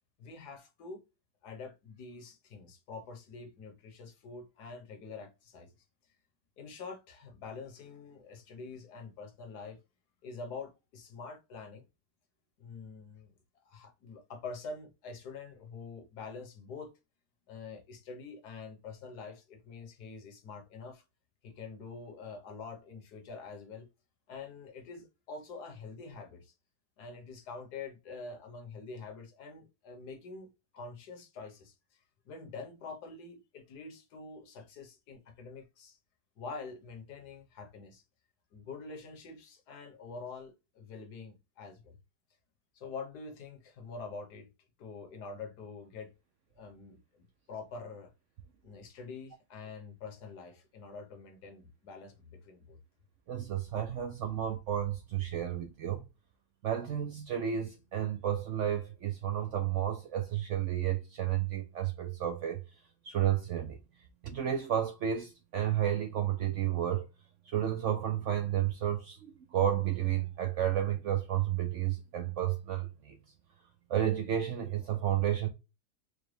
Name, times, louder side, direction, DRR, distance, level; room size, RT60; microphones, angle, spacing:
voice 1, 0.2-1.0 1.4-5.7 6.6-9.8 10.2-11.8 12.6-13.3 13.6-17.0 17.5-21.0 21.4-23.9 24.3-26.5 27.0-36.0 36.4-38.0 38.5-41.9 42.7-44.5 44.8-46.1 46.6-48.1 48.6-52.8, left 4 dB, 75° left, 1.5 m, -46 dB
voice 2, 53.3-56.0 56.6-62.6 63.0-63.8 64.2-67.1 67.5-73.2 73.9-75.5, right 10 dB, 65° right, 0.7 m, -31 dB
4.9 x 2.2 x 3.2 m
omnidirectional pair, 1.7 m